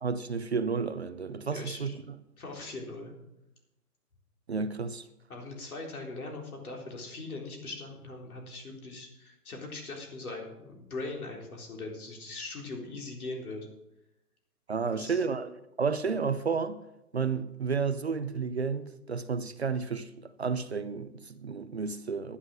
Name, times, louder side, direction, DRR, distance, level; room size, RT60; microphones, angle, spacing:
voice 1, 0.0-1.9 4.5-5.1 14.7-16.8 17.1-22.4, right 5 dB, 45° right, 0.6 m, -31 dB
voice 2, 1.5-2.0 2.4-3.1 5.3-13.7 14.8-15.2, left 2 dB, 70° left, 3.9 m, -40 dB
11.5 x 9.8 x 6.3 m
hypercardioid pair, 180°, 45 cm